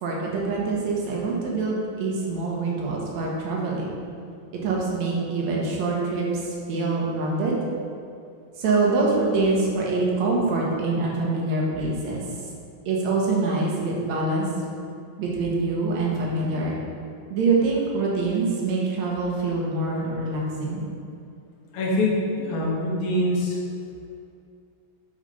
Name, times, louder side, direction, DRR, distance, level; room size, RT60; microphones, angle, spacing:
voice 1, 0.0-4.0 4.5-7.6 8.6-12.2 12.9-14.5 15.2-16.7 17.3-20.8, right 3 dB, 65° right, -3 dB, 2.1 m, -25 dB
voice 2, 21.7-23.6, left 1 dB, 80° left, -4 dB, 2.9 m, -24 dB
6.7 x 6.0 x 4.1 m, 2.5 s
omnidirectional pair, 4.0 m